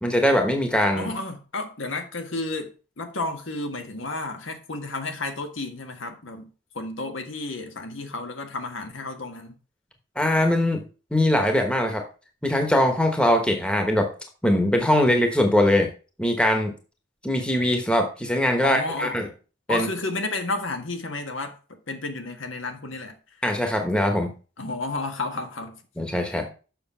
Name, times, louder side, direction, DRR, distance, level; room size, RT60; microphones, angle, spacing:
voice 1, 0.0-1.1 10.2-10.8 11.1-12.1 12.4-14.1 14.4-15.9 16.2-16.7 17.2-19.3 19.7-19.9 23.4-24.3 26.0-26.5, left 1 dB, 5° left, 1.1 m, -21 dB
voice 2, 1.0-9.6 18.6-19.2 19.7-23.2 24.6-25.8, left 2 dB, 85° left, 1.6 m, -32 dB
6.9 x 6.4 x 5.5 m
head